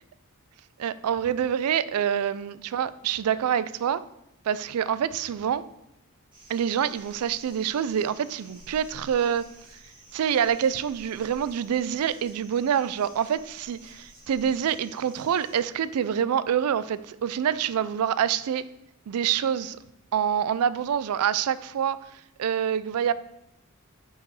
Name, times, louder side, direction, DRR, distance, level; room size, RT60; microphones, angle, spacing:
voice 1, 0.8-4.0 4.5-5.7 6.5-9.5 10.1-18.6 19.1-19.8 20.1-23.1, right 8 dB, 85° right, 0.4 m, -26 dB
sound 1, 6.3-15.6, right 1 dB, 25° right, 1.9 m, -52 dB
5.5 x 4.7 x 4.7 m
head